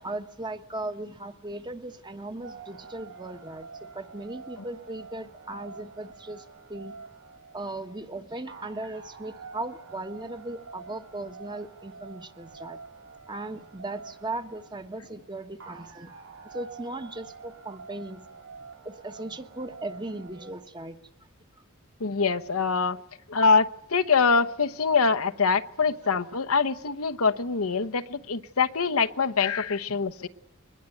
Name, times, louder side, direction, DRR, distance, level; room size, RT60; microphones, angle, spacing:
voice 1, 0.0-6.9 7.5-12.8 13.3-16.1 16.5-18.2 18.8-21.0 26.0-26.1, right 2 dB, 20° right, 8 dB, 1.3 m, -37 dB
sound 1, 2.4-20.5, right 5 dB, 75° right, 4.4 m, -47 dB
voice 2, 22.0-23.0 23.3-30.3, left 5 dB, 85° left, 8 dB, 1.0 m, -24 dB
22.5 x 20.5 x 9.1 m, 0.78 s
head